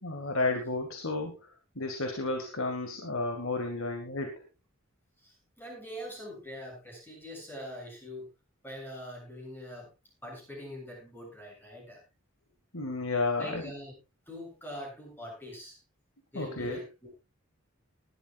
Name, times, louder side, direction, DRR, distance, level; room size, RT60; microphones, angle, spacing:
voice 1, 0.0-1.4 1.8-4.3 12.7-13.6 16.4-16.8, left 3 dB, 70° left, 4 dB, 2.1 m, -32 dB
voice 2, 5.2-8.3 8.6-9.9 10.2-12.0 13.4-13.9 14.3-15.8 16.3-17.1, left 1 dB, 10° left, -1 dB, 7.4 m, -43 dB
19.0 x 12.0 x 2.5 m, 0.27 s
head